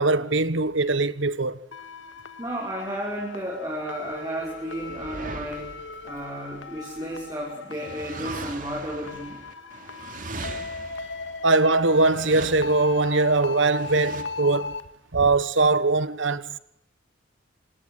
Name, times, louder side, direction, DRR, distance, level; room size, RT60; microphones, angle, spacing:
voice 1, 0.0-1.6 11.4-14.7 15.1-16.6, right 3 dB, 80° right, 1.4 m, -21 dB
sound 1, 1.7-14.8, left 4 dB, 80° left, 2.1 m, -38 dB
voice 2, 2.4-5.7 6.0-9.4, right 1 dB, 20° right, 6.0 m, -33 dB
sound 2, 4.1-7.2 7.7-14.2, right 3 dB, 45° right, 3.0 m, -40 dB
27.5 x 19.5 x 9.6 m
head